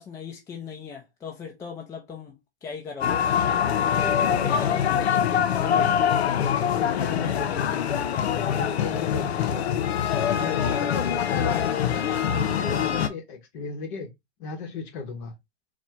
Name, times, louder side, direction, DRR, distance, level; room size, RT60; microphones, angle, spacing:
voice 1, 0.0-2.4 2.6-3.3 3.9-4.9 5.1-5.4 10.7-10.9, left 6 dB, 10° left, 0.4 m, -38 dB
sound 1, 3.0-13.1, left 8 dB, 80° left, 0.6 m, -24 dB
voice 2, 4.1-4.6 5.5-6.0 6.4-8.0 8.4-9.8 10.3-11.8 12.1-14.1 14.4-15.3, left 5 dB, 45° left, 1.2 m, -36 dB
4.1 x 2.2 x 2.8 m
hypercardioid pair, 130°, 32 cm